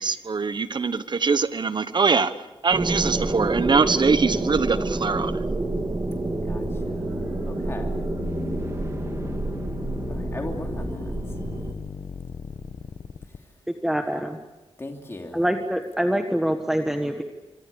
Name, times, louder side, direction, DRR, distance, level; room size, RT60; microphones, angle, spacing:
voice 1, 0.0-2.3 2.6-5.3, right 4 dB, 50° right, 1.2 m, -22 dB
sound 1, 2.7-11.7, right 2 dB, 30° right, 2.8 m, -28 dB
sound 2, 4.6-13.4, left 6 dB, 70° left, 1.4 m, -37 dB
voice 2, 6.4-8.0 10.1-11.2 14.8-15.5, left 2 dB, 25° left, 2.9 m, -38 dB
voice 3, 13.8-14.4 15.3-17.2, equal, 5° right, 1.5 m, -25 dB
26.0 x 25.0 x 7.0 m
wide cardioid pair, 110°, 10 cm